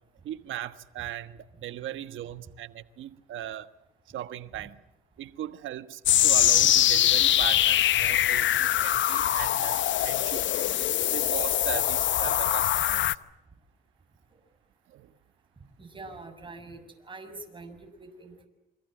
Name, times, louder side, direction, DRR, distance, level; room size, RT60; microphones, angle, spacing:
voice 1, 0.2-3.7 4.1-4.8 5.2-10.5 11.1-13.2 14.9-15.1, right 12 dB, 80° right, 1.4 m, -38 dB
sound 1, 6.1-13.1, left 12 dB, 70° left, 0.9 m, -23 dB
voice 2, 15.8-18.5, right 3 dB, 25° right, 6.8 m, -45 dB
28.0 x 25.0 x 7.8 m
cardioid pair, 90°, 20 cm